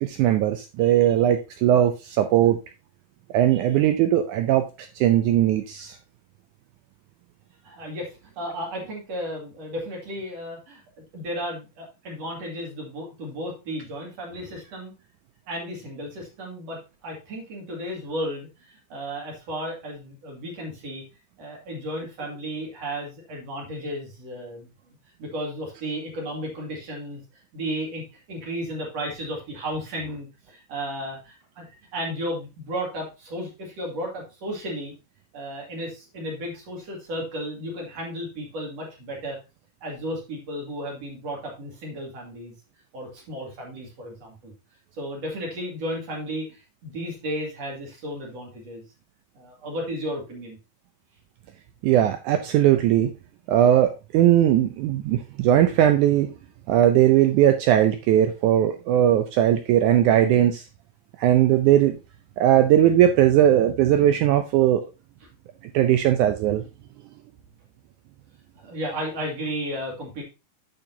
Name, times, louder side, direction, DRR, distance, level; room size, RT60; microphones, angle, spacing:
voice 1, 0.0-2.6 3.3-4.6 5.0-6.0 51.8-53.1 53.5-56.3 56.7-60.6 61.2-62.0 62.4-64.8 65.7-66.6, right 11 dB, 85° right, 7 dB, 1.7 m, -19 dB
voice 2, 7.6-10.8 11.1-14.9 15.5-21.0 21.4-24.7 25.2-27.2 27.5-31.7 31.9-34.9 35.3-39.4 39.8-42.5 42.9-44.5 44.9-48.8 49.3-50.6 65.2-65.3 68.5-70.2, equal, 50° right, -1 dB, 3.1 m, -34 dB
8.7 x 6.8 x 2.7 m, 0.27 s
omnidirectional pair, 4.2 m